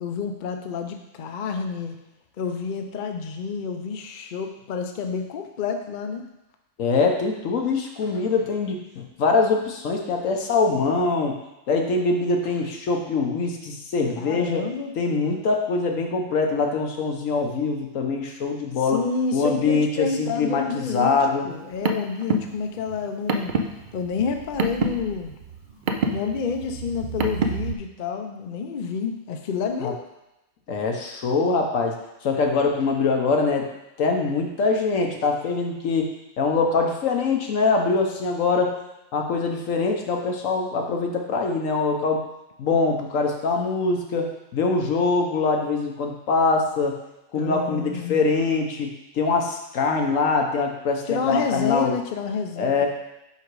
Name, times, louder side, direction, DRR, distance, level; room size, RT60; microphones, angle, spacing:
voice 1, 0.0-2.0 2.4-6.3 14.2-14.9 18.8-21.2 21.4-23.6 23.9-25.3 26.1-30.0 47.4-48.2 51.1-52.9, left 5 dB, 50° left, 5 dB, 0.6 m, -29 dB
voice 2, 6.8-11.3 11.7-14.6 15.0-19.0 19.3-21.5 29.8-29.9 30.7-32.0 32.2-33.7 34.0-36.1 36.4-38.8 39.1-42.2 42.6-47.0 47.3-48.9 49.2-51.9 52.6-52.9, left 4 dB, 80° left, 2 dB, 1.3 m, -23 dB
Car, 21.5-27.7, right 3 dB, 55° right, 0.5 m, -28 dB
5.6 x 5.0 x 4.7 m, 0.94 s
omnidirectional pair, 1.3 m